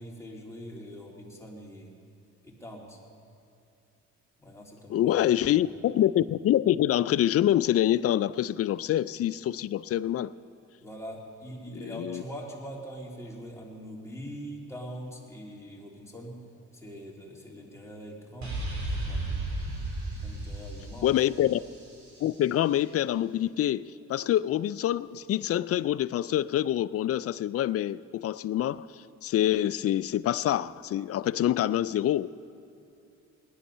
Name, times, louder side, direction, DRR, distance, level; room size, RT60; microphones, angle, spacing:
voice 1, 0.0-2.0 2.4-3.0 4.4-5.5 10.8-16.4 16.7-18.6 18.9-19.4 20.2-21.1, equal, 10° left, -3 dB, 2.9 m, -43 dB
voice 2, 4.9-10.3 11.7-12.2 21.0-21.6 22.2-28.9 29.2-32.3, left 12 dB, 50° left, 16 dB, 0.4 m, -26 dB
sound 1, 18.4-22.2, right 2 dB, 65° right, 3.7 m, -34 dB
19.5 x 10.5 x 5.5 m, 2.7 s
cardioid pair, 90°, 30 cm